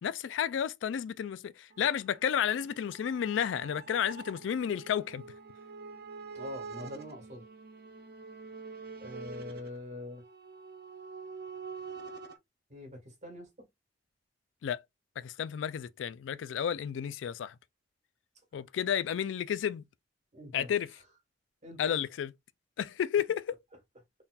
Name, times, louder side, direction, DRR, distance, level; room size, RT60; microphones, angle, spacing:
voice 1, 0.0-5.2 14.6-14.8 15.2-17.5 18.5-19.8 20.5-21.0 21.8-22.3 22.8-23.5, left 8 dB, 80° left, 0.3 m, -32 dB
sound 1, 1.7-12.4, right 4 dB, 60° right, 0.7 m, -46 dB
voice 2, 6.4-7.4 9.0-10.2 12.7-13.5 20.3-20.7 21.6-22.0, left 1 dB, 40° right, 1.7 m, -44 dB
4.1 x 3.7 x 2.3 m
head